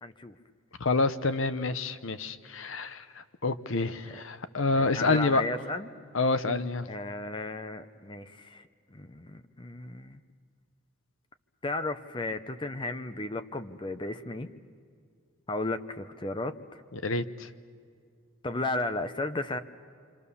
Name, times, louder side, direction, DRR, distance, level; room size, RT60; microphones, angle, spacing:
voice 1, 0.0-0.3 4.0-4.2 4.7-5.9 6.9-10.2 11.6-14.5 15.5-16.8 18.4-19.6, left 2 dB, 25° left, 10 dB, 0.7 m, -34 dB
voice 2, 0.8-3.0 3.4-5.4 6.1-6.9 17.0-17.5, left 3 dB, 70° left, 12 dB, 0.9 m, -27 dB
28.0 x 26.0 x 7.0 m, 2.2 s
head